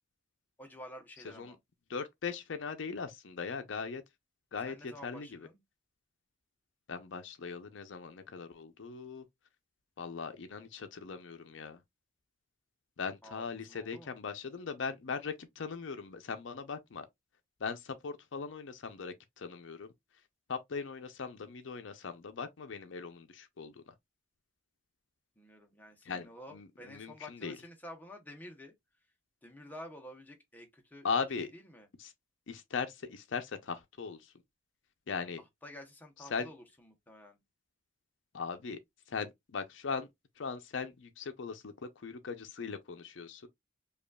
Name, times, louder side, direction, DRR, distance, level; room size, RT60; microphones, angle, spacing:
voice 1, 0.6-1.6 4.7-5.6 13.2-14.1 25.4-28.7 29.4-31.1 31.4-31.9 35.4-37.4, left 1 dB, 10° left, 0.8 m, -50 dB
voice 2, 1.9-4.0 4.5-5.3 6.9-9.2 10.0-11.8 13.0-17.1 17.6-19.9 20.5-23.9 26.1-27.1 27.4-27.5 31.0-31.5 32.5-34.2 35.1-35.4 36.3-36.5 38.3-38.8 39.1-40.1 40.4-43.5, left 5 dB, 70° left, 0.5 m, -39 dB
5.0 x 2.4 x 2.2 m
head